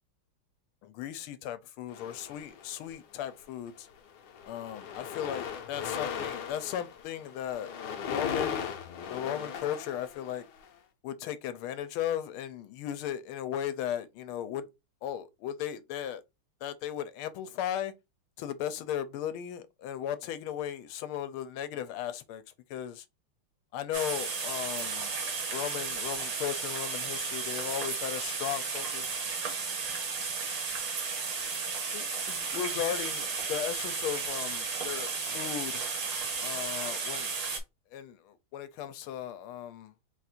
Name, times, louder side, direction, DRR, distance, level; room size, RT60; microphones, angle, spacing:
voice 1, 0.8-3.9 4.4-7.7 8.0-8.7 9.1-10.4 11.0-14.6 15.0-16.2 16.6-17.9 18.4-22.4 22.7-23.0 23.7-25.1 25.5-29.2 31.9-37.5 37.9-39.9, left 10 dB, 85° left, 1.5 m, -36 dB
sound 1, 1.9-2.9 3.7-3.9 4.2-10.6, left 7 dB, 65° left, 1.2 m, -38 dB
sound 2, 23.9-37.6, right 4 dB, 85° right, 2.0 m, -34 dB
4.1 x 2.5 x 4.2 m
omnidirectional pair, 2.3 m